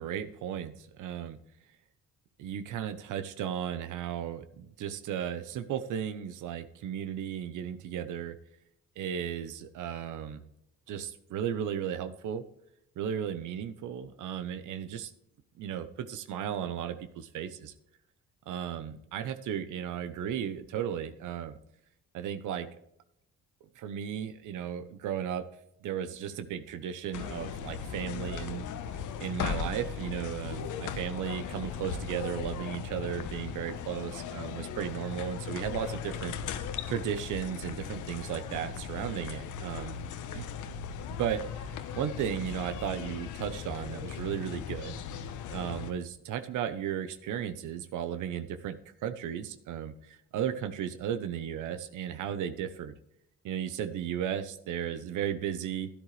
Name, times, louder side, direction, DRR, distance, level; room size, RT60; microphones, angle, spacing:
voice 1, 0.0-1.4 2.4-8.3 9.0-10.5 10.9-12.4 13.0-15.1 15.6-17.7 18.5-21.6 22.1-22.8 23.8-25.4 25.8-28.7 29.2-36.4 36.9-40.0 40.3-40.4 41.2-45.0 45.5-52.9 53.4-55.9, right 9 dB, 80° right, 11 dB, 0.9 m, -35 dB
sound 1, 27.1-45.9, left 7 dB, 80° left, 1.0 m, -38 dB
12.0 x 10.5 x 3.2 m, 0.78 s
cardioid pair, 90°, 30 cm